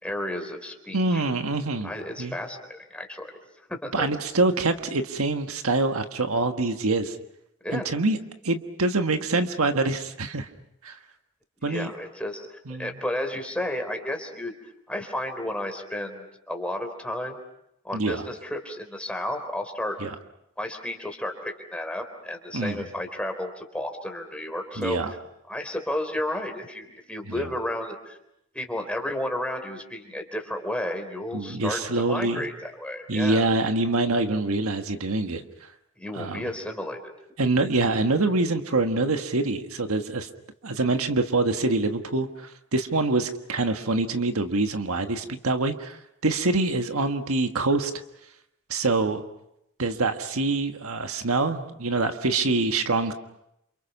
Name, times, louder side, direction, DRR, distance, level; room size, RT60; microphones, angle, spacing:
voice 1, 0.0-1.2 1.8-3.4 3.7-4.1 7.6-7.9 11.7-14.5 14.9-17.4 17.8-20.0 20.6-25.0 25.5-28.2 28.5-31.8 32.1-33.4 36.0-37.0, left 1 dB, 5° left, 4 dB, 3.7 m, -32 dB
voice 2, 0.9-1.9 2.2-2.4 3.9-7.2 7.7-8.2 8.4-10.5 10.8-10.9 11.6-11.9 12.7-13.0 17.9-18.2 20.0-20.1 22.5-22.9 24.8-25.1 27.3-27.5 31.3-32.5 33.1-35.4 36.1-36.4 37.4-40.3 40.6-47.9 48.7-49.2 49.8-53.1, right 2 dB, 75° right, 6 dB, 1.5 m, -25 dB
29.0 x 28.5 x 6.0 m, 0.81 s
head